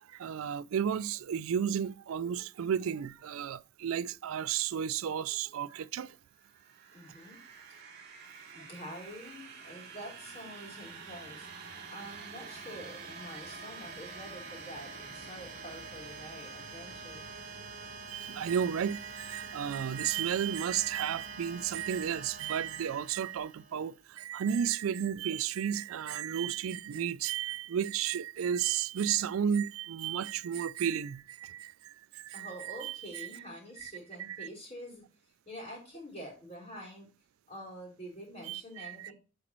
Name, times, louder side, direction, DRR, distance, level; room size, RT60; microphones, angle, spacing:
voice 1, 0.1-6.1 18.1-33.3 33.8-33.9 34.2-34.5 38.5-39.1, right 8 dB, 85° right, 0.4 m, -33 dB
sound 1, 6.4-24.0, right 4 dB, 50° right, 2.4 m, -46 dB
voice 2, 6.9-7.4 8.5-11.5 11.9-17.2 32.3-37.1 37.5-39.1, equal, 30° left, 3.6 m, -47 dB
10.0 x 5.1 x 3.0 m
head